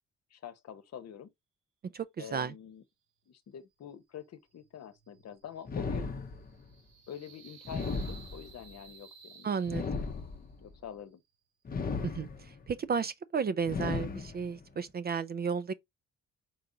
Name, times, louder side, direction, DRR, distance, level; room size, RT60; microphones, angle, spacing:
voice 1, 0.3-1.3 2.2-2.8 3.3-6.1 7.1-9.6 9.9-10.2 10.6-11.2, left 8 dB, 55° left, 0.9 m, -46 dB
voice 2, 1.8-2.5 9.4-9.8 12.0-15.7, right 6 dB, 35° right, 0.4 m, -33 dB
sound 1, 4.5-10.4, right 6 dB, 85° right, 1.7 m, -56 dB
Fire Magic Spell Sound Effect, 5.7-6.7 7.6-8.7 9.6-10.7 11.7-12.7 13.6-14.7, left 4 dB, 30° left, 0.7 m, -36 dB
4.6 x 3.7 x 2.7 m
cardioid pair, 90°, 30 cm